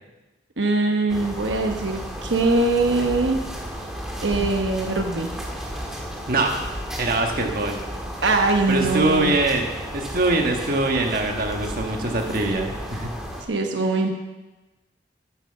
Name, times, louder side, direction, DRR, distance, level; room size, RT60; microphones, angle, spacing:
voice 1, 0.6-3.4 4.2-5.3 8.2-9.3 13.5-14.1, right 3 dB, 90° right, 3 dB, 1.2 m, -22 dB
sound 1, 1.1-13.4, equal, 5° right, 1.7 m, -33 dB
voice 2, 6.3-6.6 7.0-7.8 8.7-13.1, right 2 dB, 50° right, 2 dB, 1.6 m, -23 dB
10.0 x 9.7 x 6.9 m, 1.1 s
head